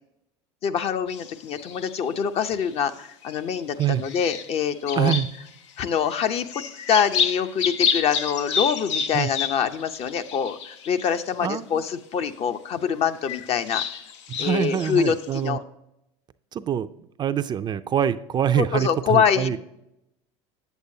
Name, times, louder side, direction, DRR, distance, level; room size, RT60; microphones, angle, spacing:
voice 1, 0.6-5.1 5.8-6.6 6.9-13.8 14.4-15.6 18.5-19.6, left 7 dB, 45° left, 9 dB, 0.6 m, -25 dB
sound 1, 1.1-2.1 2.6-3.3 3.8-5.7 6.0-11.3 11.9-12.0 13.1-15.3, left 7 dB, 85° left, 0.6 m, -30 dB
voice 2, 5.0-5.3 9.1-9.3 11.4-11.8 14.3-15.6 16.5-16.9 17.2-19.6, right 9 dB, 30° right, 11 dB, 0.4 m, -24 dB
8.1 x 8.1 x 2.8 m, 0.82 s
supercardioid pair, 100°, 15 cm